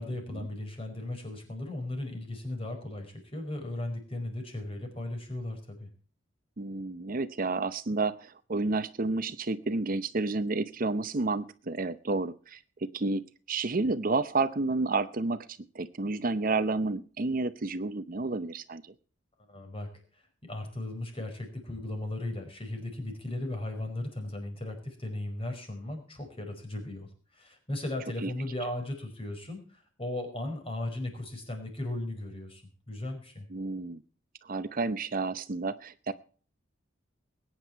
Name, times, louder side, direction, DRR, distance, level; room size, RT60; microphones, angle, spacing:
voice 1, 0.0-5.9 19.5-19.9 20.4-33.5, left 1 dB, 30° left, 5 dB, 5.0 m, -37 dB
voice 2, 6.6-15.5 15.7-18.8 28.2-28.3 33.5-34.0 34.4-36.1, right 3 dB, 45° right, 13 dB, 0.7 m, -30 dB
21.0 x 9.8 x 4.6 m, 0.41 s
head